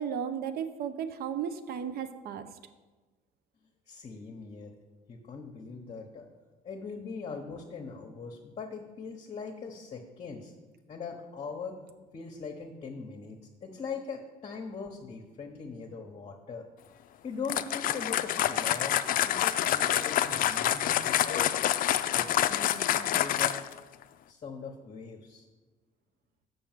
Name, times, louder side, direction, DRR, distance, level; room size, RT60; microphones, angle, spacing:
voice 1, 0.0-2.5, right 8 dB, 65° right, 10 dB, 0.8 m, -34 dB
voice 2, 3.9-4.8 5.1-6.3 6.6-10.5 10.9-11.8 12.1-16.6 17.2-19.0 19.2-21.5 22.2-23.6 24.3-25.5, left 5 dB, 35° left, 1 dB, 1.0 m, -41 dB
sound 1, 17.4-23.8, left 12 dB, 55° left, 0.4 m, -27 dB
6.6 x 5.6 x 7.3 m, 1.2 s
cardioid pair, 110°, 17 cm